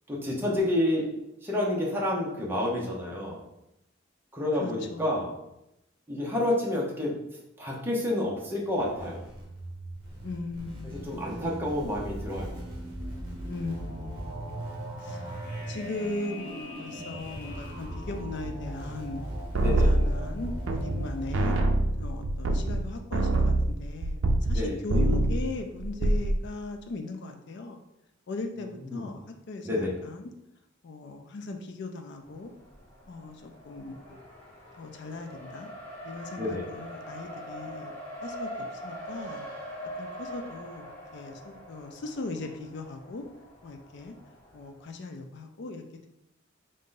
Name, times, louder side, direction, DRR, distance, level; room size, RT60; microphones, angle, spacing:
voice 1, 0.1-1.1 1.4-3.4 4.3-5.3 6.1-7.1 7.6-9.2 11.0-12.5 19.6-19.9 24.5-24.7 28.8-29.1 29.6-29.9 36.4-36.6, left 1 dB, 10° right, -4 dB, 0.7 m, -29 dB
voice 2, 4.6-5.2 10.2-11.2 13.5-14.6 15.0-15.3 15.7-19.3 19.6-21.6 22.0-27.8 28.3-30.2 30.8-32.5 33.1-34.2 34.8-35.7 36.0-37.9 38.2-38.5 38.8-39.5 40.0-40.8 41.1-43.2 43.6-44.1 44.5-46.1, left 3 dB, 60° left, 4 dB, 0.4 m, -38 dB
sound 1, 8.7-21.6, right 1 dB, 45° right, 0.9 m, -38 dB
sound 2, 19.5-21.1 21.3-24.6 24.9-25.5 25.8-26.4, right 1 dB, 75° right, 0.4 m, -25 dB
Race car auto racing, 32.2-44.8, equal, 10° left, 1.2 m, -43 dB
3.7 x 2.6 x 3.7 m, 0.85 s
head